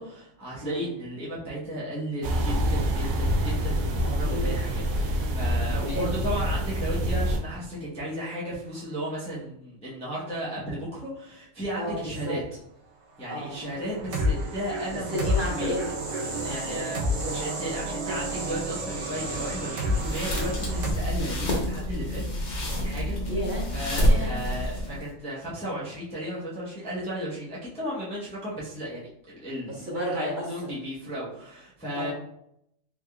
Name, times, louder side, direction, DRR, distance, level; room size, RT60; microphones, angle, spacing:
voice 1, 0.0-12.4 13.2-15.7 16.4-17.0 17.3-22.2 22.8-23.2 23.7-32.1, equal, 5° left, -7 dB, 0.7 m, -34 dB
sound 1, 2.2-7.4, equal, 90° right, 1.1 m, -26 dB
voice 2, 4.0-4.5 5.7-6.1 11.7-12.3 13.3-13.5 14.9-17.4 23.3-23.6 24.0-24.4 29.7-30.7 31.9-32.1, equal, 40° right, -5 dB, 1.1 m, -33 dB
sound 2, 13.6-20.9, equal, 70° right, 1.1 m, -30 dB
sound 3, 19.8-25.1, equal, 40° left, 0.8 m, -27 dB
3.7 x 3.4 x 2.3 m, 0.76 s
omnidirectional pair, 1.4 m